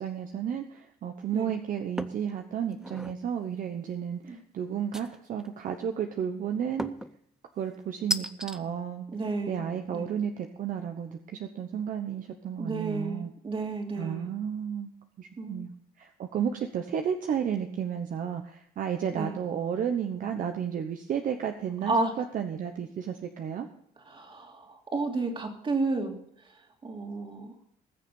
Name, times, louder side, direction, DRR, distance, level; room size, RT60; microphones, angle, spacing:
voice 1, 0.0-7.0 7.6-9.1 9.5-13.3 14.0-23.7, right 8 dB, 55° right, 5 dB, 1.1 m, -32 dB
sound 1, 2.0-2.3 2.7-3.2 4.9-5.5 6.8-7.2 8.1-8.6, equal, 5° right, 0.6 m, -34 dB
voice 2, 9.1-9.6 9.9-10.1 12.6-14.3 15.4-15.6 19.1-19.3 21.9-22.1 24.1-26.2 26.8-27.5, right 3 dB, 30° right, 3 dB, 2.8 m, -31 dB
20.0 x 6.7 x 5.6 m, 0.71 s
cardioid pair, 110°, 17 cm